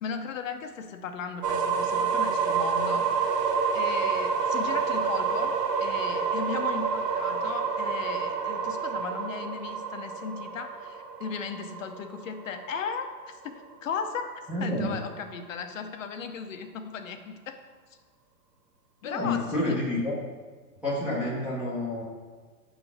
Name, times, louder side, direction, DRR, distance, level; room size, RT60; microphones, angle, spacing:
voice 1, 0.0-3.3 3.7-14.3 14.6-17.6 19.0-19.8, left 6 dB, 55° left, 7 dB, 0.7 m, -36 dB
sound 1, 1.4-13.2, right 5 dB, 85° right, 0.9 m, -28 dB
voice 2, 14.5-14.9 19.0-20.1 20.8-22.0, left 1 dB, 5° right, -9 dB, 0.6 m, -29 dB
5.4 x 4.0 x 6.1 m, 1.4 s
hypercardioid pair, 135°, 48 cm